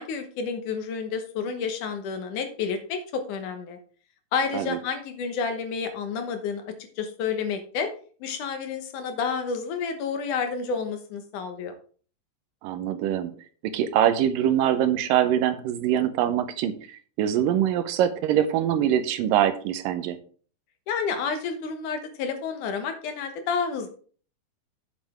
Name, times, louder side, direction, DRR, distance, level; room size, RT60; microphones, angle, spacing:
voice 1, 0.0-3.8 4.3-6.6 7.0-7.9 8.2-11.7 20.9-23.9, left 5 dB, 70° left, 7 dB, 2.5 m, -30 dB
voice 2, 12.6-13.3 13.6-20.2, right 10 dB, 90° right, 9 dB, 2.5 m, -24 dB
8.8 x 7.5 x 3.5 m, 0.42 s
omnidirectional pair, 3.9 m